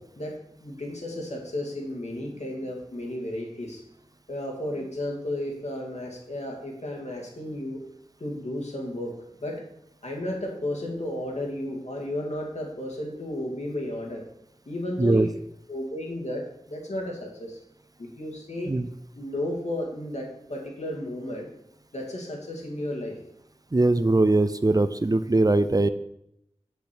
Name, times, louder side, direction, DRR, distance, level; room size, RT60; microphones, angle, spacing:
voice 1, 0.2-3.8 4.3-7.8 8.2-9.1 9.4-9.7 10.0-14.3 14.7-15.3 15.7-17.6 18.0-18.7 19.1-21.5 21.9-23.2, left 1 dB, 85° left, -1 dB, 2.2 m, -33 dB
voice 2, 23.7-25.9, right 2 dB, 35° right, 13 dB, 0.5 m, -21 dB
8.4 x 7.9 x 4.5 m, 0.78 s
wide cardioid pair, 55°, 11 cm